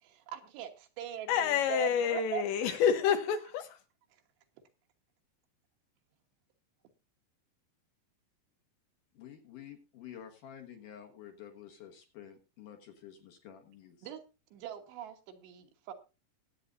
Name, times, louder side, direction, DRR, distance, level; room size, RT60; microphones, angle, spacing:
voice 1, 0.0-2.8 4.1-4.2 14.0-14.2 14.5-15.9, right 11 dB, 75° right, 5 dB, 3.5 m, -41 dB
voice 2, 1.3-3.8, left 8 dB, 90° left, 7 dB, 3.8 m, -28 dB
voice 3, 9.1-14.1, left 9 dB, 60° left, 4 dB, 2.4 m, -50 dB
21.5 x 8.7 x 2.6 m, 0.31 s
omnidirectional pair, 5.1 m